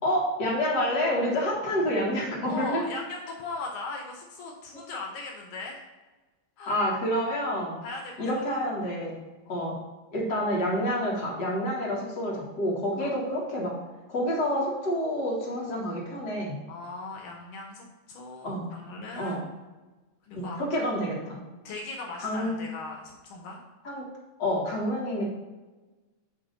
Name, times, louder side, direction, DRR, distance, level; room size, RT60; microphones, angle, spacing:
voice 1, 0.0-2.8 6.7-7.8 8.2-9.2 9.5-9.7 10.1-13.7 14.1-16.6 18.4-18.7 19.2-19.4 20.3-21.4 22.2-22.6 23.8-24.0 24.4-25.3, equal, 40° left, -4 dB, 1.8 m, -28 dB
voice 2, 2.4-5.8 6.6-6.7 7.8-8.6 9.4-9.7 13.0-13.1 16.7-19.4 20.2-20.9 21.6-23.6, left 3 dB, 80° left, 0 dB, 1.1 m, -39 dB
8.1 x 2.9 x 5.2 m, 1.2 s
omnidirectional pair, 3.4 m